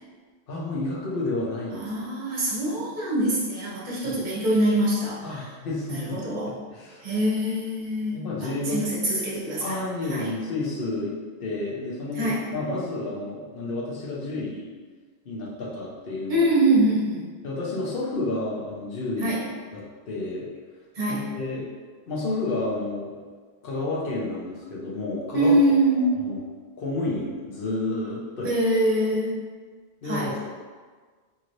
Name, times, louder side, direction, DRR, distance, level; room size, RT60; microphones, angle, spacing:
voice 1, 0.5-2.1 4.0-4.1 5.2-6.2 6.5-7.0 8.1-8.8 9.6-11.1 11.4-14.7 15.2-16.5 17.4-19.4 19.7-20.4 21.1-21.6 22.1-23.1 23.6-25.6 25.9-26.4 26.8-28.5 30.0-30.4, left 2 dB, 60° left, -5 dB, 0.9 m, -30 dB
voice 2, 1.8-5.2 5.9-6.5 7.0-8.3 8.7-9.8 10.1-10.3 12.2-12.4 16.3-17.3 19.2-19.4 21.0-21.3 25.3-26.1 28.4-29.4 30.0-30.3, right 1 dB, 50° right, -5 dB, 0.8 m, -24 dB
3.0 x 2.8 x 2.5 m, 1.5 s
omnidirectional pair, 1.1 m